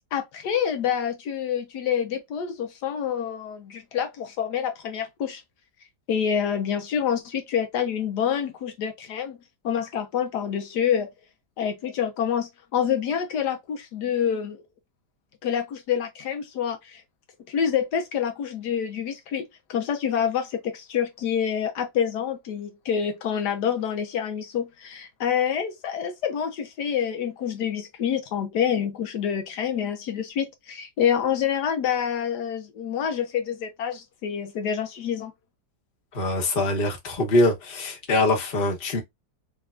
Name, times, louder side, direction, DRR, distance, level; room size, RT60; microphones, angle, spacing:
voice 1, 0.1-5.4 6.1-9.4 9.6-11.1 11.6-14.6 15.4-17.0 17.5-35.3, left 8 dB, 80° left, 1.3 m, -27 dB
voice 2, 36.1-39.0, left 2 dB, 35° left, 1.2 m, -23 dB
3.4 x 3.4 x 2.4 m
omnidirectional pair, 1.8 m